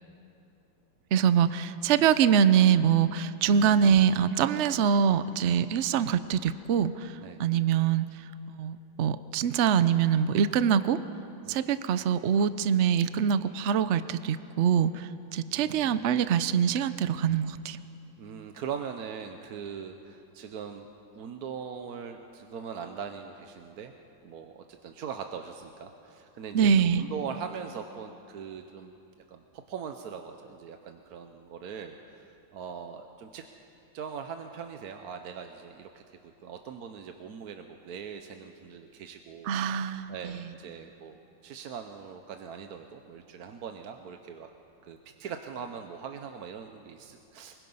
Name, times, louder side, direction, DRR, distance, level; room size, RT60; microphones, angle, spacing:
voice 1, 1.1-7.1 7.4-8.1 8.5-11.0 11.5-17.8 26.5-27.0 39.5-40.4, right 8 dB, 85° right, 13 dB, 0.6 m, -24 dB
voice 2, 15.6-15.9 18.2-20.9 21.1-23.9 24.2-29.0 29.3-33.4 33.9-39.5 39.8-44.5 44.8-47.5, right 7 dB, 60° right, 6 dB, 1.2 m, -41 dB
24.5 x 22.0 x 5.5 m, 2.8 s
omnidirectional pair, 2.0 m